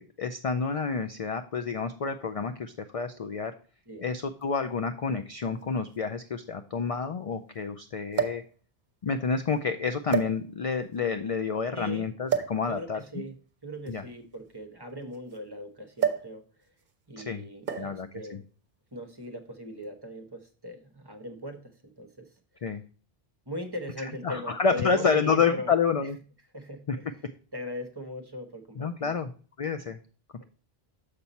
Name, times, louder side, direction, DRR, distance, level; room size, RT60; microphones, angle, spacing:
voice 1, 0.0-3.5 4.0-8.4 9.0-13.2 13.9-14.0 17.2-17.4 17.7-18.1 22.6-22.8 24.2-26.2 26.9-27.0 28.8-29.3 29.6-30.0, left 5 dB, 50° left, 8 dB, 0.4 m, -29 dB
sound 1, 4.4-4.5 5.6-5.7 5.9-6.0 8.1-8.5 9.4-9.5 10.1-10.8 12.3-12.6 13.7-15.4 16.0-16.4 16.6-16.9 17.7-18.0 19.0-19.3, right 8 dB, 50° right, 0.9 m, -30 dB
voice 2, 11.7-12.1 12.7-13.3 13.6-16.7 17.1-18.4 18.9-22.7 23.5-25.7 26.0-26.1 26.5-29.1, equal, 25° right, 5 dB, 1.0 m, -40 dB
6.8 x 5.8 x 4.1 m, 0.39 s
omnidirectional pair, 1.0 m